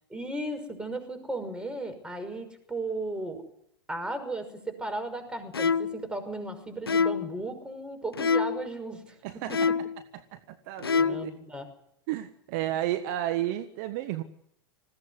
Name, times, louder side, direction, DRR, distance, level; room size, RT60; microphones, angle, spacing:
voice 1, 0.1-3.4 3.9-9.8 11.0-11.7, right 2 dB, 5° right, 8 dB, 5.8 m, -36 dB
sound 1, 5.5-6.0 6.9-7.3 8.1-8.7 9.5-10.0 10.8-11.3, left 5 dB, 85° left, 1.0 m, -26 dB
voice 2, 9.2-9.7 10.1-11.3 12.1-14.2, right 13 dB, 50° right, 10 dB, 1.5 m, -32 dB
21.0 x 17.0 x 9.7 m, 0.73 s
figure-of-eight pair, 100°, 12 cm